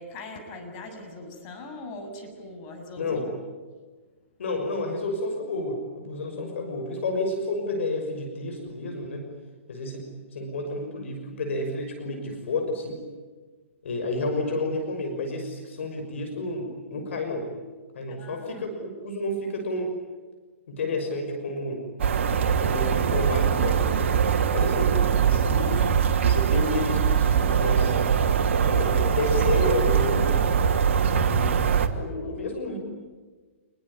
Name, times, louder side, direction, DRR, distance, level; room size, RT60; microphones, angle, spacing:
voice 1, 0.0-3.2 18.1-18.7, left 2 dB, 35° left, 4 dB, 7.7 m, -41 dB
voice 2, 3.0-3.3 4.4-9.3 9.7-13.0 13.8-17.5 17.9-19.9 20.7-21.8 22.6-25.9 26.2-27.9 28.6-30.5 31.1-32.8, left 2 dB, 65° left, 4 dB, 6.1 m, -30 dB
sound 1, 22.0-31.9, right 7 dB, 60° right, 2.6 m, -22 dB
27.5 x 22.0 x 9.9 m, 1.4 s
hypercardioid pair, 120°, 7 cm